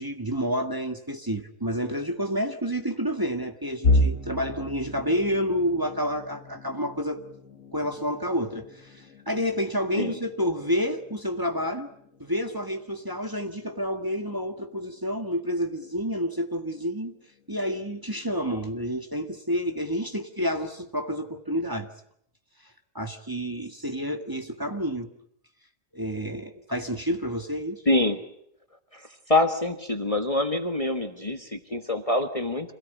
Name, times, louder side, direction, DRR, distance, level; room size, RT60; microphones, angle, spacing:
voice 1, 0.0-7.2 7.7-11.9 12.2-17.1 17.5-21.9 22.9-25.1 25.9-27.8, equal, 15° right, 1.7 m, -29 dB
sound 1, 3.8-15.7 16.1-16.4 16.7-16.9 17.8-18.2, left 1 dB, 75° left, 1.8 m, -33 dB
voice 2, 27.9-28.2 28.9-32.7, left 2 dB, 25° left, 1.5 m, -25 dB
27.0 x 17.5 x 9.3 m
omnidirectional pair, 1.4 m